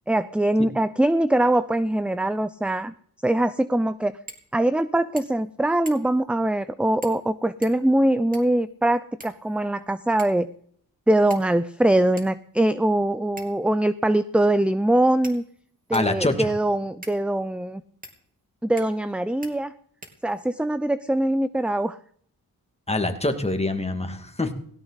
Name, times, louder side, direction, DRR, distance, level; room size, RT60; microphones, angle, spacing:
voice 1, 0.1-2.9 3.2-4.2 4.5-10.5 11.1-15.4 15.9-17.8 18.6-19.7 20.2-22.0, right 1 dB, 5° right, 14 dB, 0.5 m, -22 dB
sound 1, 4.3-4.5 4.8-4.9 5.2-5.5 5.9-6.2 7.0-7.3 7.6-8.6 9.2-9.8 10.2-10.5 11.3-11.7 12.2-12.3 13.4-13.7 14.5-14.6 15.2-16.2 17.0-17.2 18.0-18.2 18.8-19.1 19.4-19.5 20.0-20.6, right 1 dB, 20° right, 3.1 m, -45 dB
voice 2, 15.9-16.5 22.9-24.5, left 2 dB, 15° left, 6 dB, 2.3 m, -25 dB
17.5 x 16.5 x 4.1 m, 0.62 s
cardioid pair, 80°, 37 cm